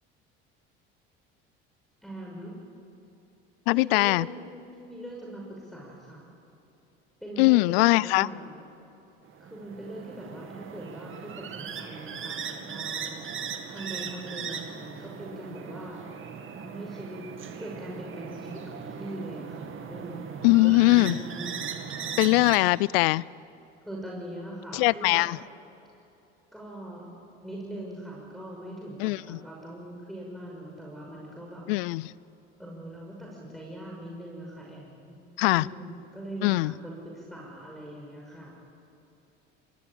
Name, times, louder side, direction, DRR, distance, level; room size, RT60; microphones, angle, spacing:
voice 1, 2.0-2.6 3.7-6.3 7.2-8.6 9.4-13.1 13.7-16.0 16.6-17.2 17.6-20.5 20.9-21.9 23.9-25.3 26.5-27.1 27.4-31.7 32.6-38.5, right 1 dB, ahead, -4 dB, 5.8 m, -41 dB
voice 2, 3.7-4.3 7.4-8.3 20.4-21.2 22.2-23.2 24.7-25.4 29.0-29.4 31.7-32.1 35.4-35.7 36.4-36.7, left 22 dB, 80° left, 23 dB, 0.5 m, -21 dB
sound 1, 9.3-22.6, right 6 dB, 45° right, 2.4 m, -38 dB
24.5 x 19.5 x 8.8 m, 2.9 s
hypercardioid pair, 75°, 29 cm